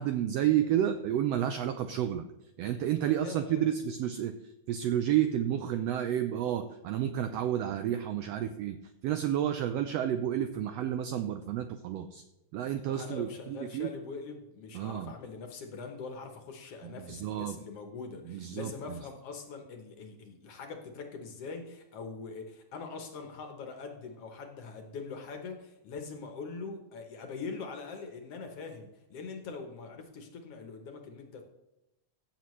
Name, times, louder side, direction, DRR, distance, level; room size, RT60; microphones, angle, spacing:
voice 1, 0.0-2.3 2.6-8.8 9.0-12.2 12.5-13.9 14.7-15.1 16.8-17.6 18.2-19.0, right 11 dB, 90° right, 9 dB, 1.4 m, -31 dB
voice 2, 3.0-3.6 12.9-31.4, left 4 dB, 65° left, 5 dB, 1.8 m, -43 dB
15.5 x 7.4 x 3.1 m, 0.93 s
omnidirectional pair, 3.5 m